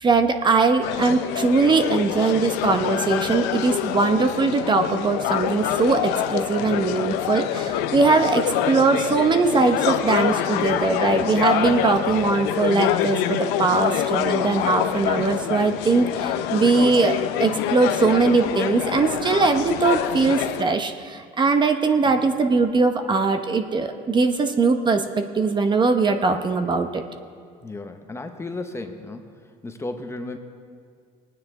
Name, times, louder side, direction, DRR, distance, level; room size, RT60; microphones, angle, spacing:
voice 1, 0.0-27.0, right 4 dB, 25° right, 7 dB, 0.8 m, -21 dB
sound 1, 0.8-20.6, left 11 dB, 80° left, 0.7 m, -26 dB
voice 2, 6.6-6.9 27.6-29.3 29.6-30.4, left 2 dB, 15° left, 6 dB, 0.8 m, -34 dB
20.0 x 9.4 x 3.7 m, 2.1 s
cardioid pair, 110°, 17 cm